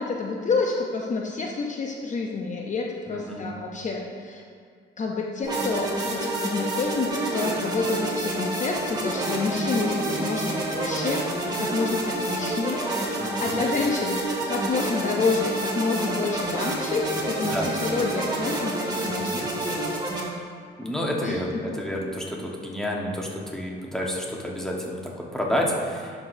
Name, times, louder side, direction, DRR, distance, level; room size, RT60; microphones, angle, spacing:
voice 1, 0.0-4.4 5.0-14.2 14.5-20.1 21.2-21.8, left 4 dB, 40° left, 0 dB, 0.7 m, -28 dB
voice 2, 3.1-3.5 13.2-13.6 17.5-17.7 19.1-19.4 20.8-25.0 25.3-26.1, equal, 5° left, -2 dB, 1.4 m, -29 dB
sound 1, 5.4-20.2, right 2 dB, 20° right, 2.0 m, -28 dB
11.0 x 6.1 x 2.7 m, 2.2 s
cardioid pair, 90°, 20 cm